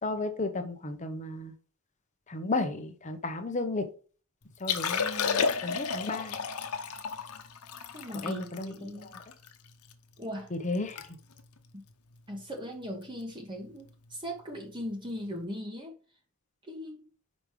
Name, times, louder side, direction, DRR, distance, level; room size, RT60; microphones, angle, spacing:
voice 1, 0.0-1.5 2.3-3.9 4.6-6.4 8.2-9.1 10.5-11.2, left 2 dB, 35° left, 0.9 m, -34 dB
Liquid, 4.5-9.9 10.4-10.5 10.7-11.1 11.3-11.6 12.2-12.4 13.9-14.0, left 6 dB, 85° left, 0.9 m, -32 dB
voice 2, 7.9-9.1 10.2-10.5 11.7-11.8 12.3-15.9 16.7-17.0, equal, 20° right, 1.4 m, -39 dB
5.3 x 5.2 x 4.8 m
head